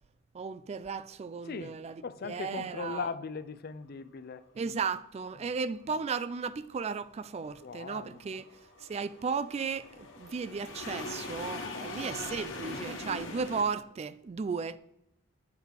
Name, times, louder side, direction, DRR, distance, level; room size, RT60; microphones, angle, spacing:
voice 1, 0.3-3.1 4.6-8.5 8.8-14.8, right 5 dB, 30° right, 0.3 m, -35 dB
voice 2, 1.5-4.4 7.6-8.2 11.7-12.1, left 5 dB, 50° left, 0.4 m, -39 dB
sound 1, 6.7-13.6, left 2 dB, 65° left, 1.3 m, -42 dB
8.2 x 5.1 x 4.7 m
head